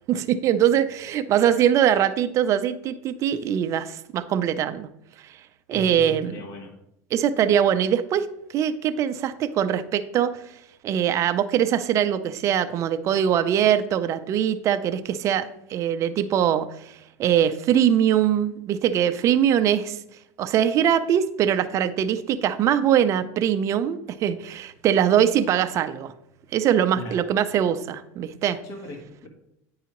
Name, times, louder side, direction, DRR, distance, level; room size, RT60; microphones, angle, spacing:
voice 1, 0.1-4.9 5.7-6.4 7.1-8.3 8.5-10.5 10.8-20.0 20.4-26.1 26.5-28.6, right 9 dB, 40° right, 10 dB, 0.5 m, -22 dB
voice 2, 5.7-6.8 26.9-27.3 28.6-29.3, left 1 dB, 40° left, 4 dB, 1.3 m, -38 dB
9.3 x 4.8 x 3.0 m, 0.80 s
supercardioid pair, 130°, 8 cm